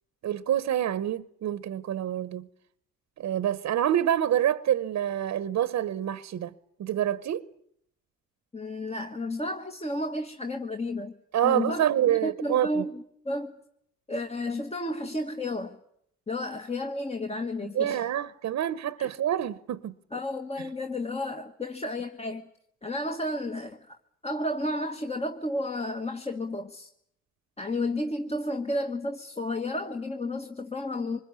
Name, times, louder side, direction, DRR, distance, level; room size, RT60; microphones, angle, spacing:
voice 1, 0.2-2.5 3.2-6.5 6.8-7.5 11.3-12.8 17.7-19.9 20.6-20.7, right 11 dB, 65° right, 1.0 m, -27 dB
voice 2, 8.5-11.1 11.4-13.5 14.1-15.8 16.3-18.0 19.0-19.1 20.1-22.5 22.8-24.0 24.2-26.9 27.6-31.2, left 1 dB, 20° left, 1.5 m, -32 dB
25.0 x 21.0 x 9.7 m
cardioid pair, 90°, 30 cm